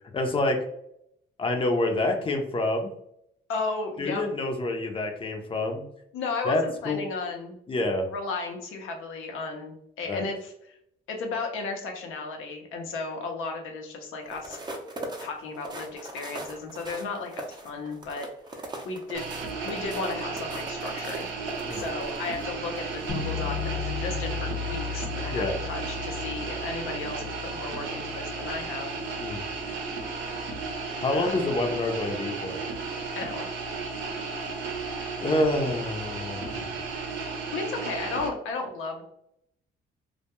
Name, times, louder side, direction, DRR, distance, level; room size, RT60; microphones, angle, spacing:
voice 1, 0.1-0.6 1.4-2.9 4.0-5.8 6.4-7.0 7.7-8.1 10.1-10.3 21.7-21.8 25.3-25.5 29.2-29.4 31.0-32.6 35.2-36.7, left 2 dB, 25° left, 4 dB, 0.6 m, -27 dB
voice 2, 3.5-4.2 6.1-7.5 8.1-10.8 11.1-14.6 15.2-18.3 18.8-19.4 19.6-21.3 21.7-29.2 31.1-31.3 33.2-33.5 37.5-39.0, left 3 dB, 90° left, 3 dB, 0.6 m, -34 dB
sound 1, 14.2-22.4 22.9-23.1, right 1 dB, 20° right, 0.5 m, -40 dB
sound 2, 19.1-38.3, right 4 dB, 80° right, 0.7 m, -34 dB
sound 3, 23.1-29.1, left 6 dB, 65° left, 1.0 m, -35 dB
2.2 x 2.2 x 2.8 m, 0.74 s
cardioid pair, 90°, 20 cm